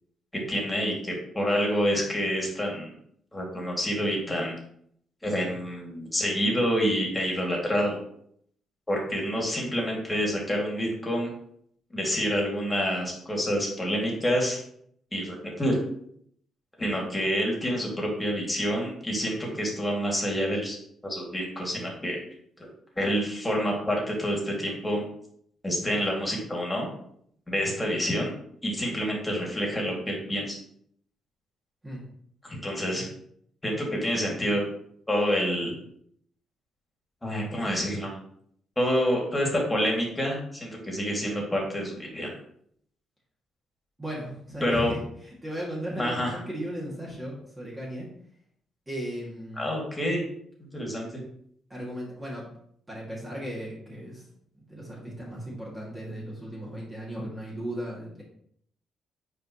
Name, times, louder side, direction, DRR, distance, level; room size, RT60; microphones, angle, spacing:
voice 1, 0.3-2.9 3.3-4.6 5.2-8.0 8.9-11.3 11.9-14.6 15.1-15.8 16.8-20.8 21.0-22.2 23.0-25.0 25.6-26.9 27.5-28.3 28.6-30.6 32.4-33.0 33.6-34.6 35.1-35.7 37.2-38.1 38.8-42.4 44.6-44.9 46.0-46.4 49.6-50.2 50.6-51.2, equal, 15° left, -1 dB, 2.4 m, -27 dB
voice 2, 44.0-48.1 48.9-49.7 51.7-52.5 52.9-54.2 54.5-58.2, equal, 20° right, -5 dB, 2.3 m, -36 dB
8.9 x 4.7 x 3.1 m, 0.67 s
cardioid pair, 90°, 0 cm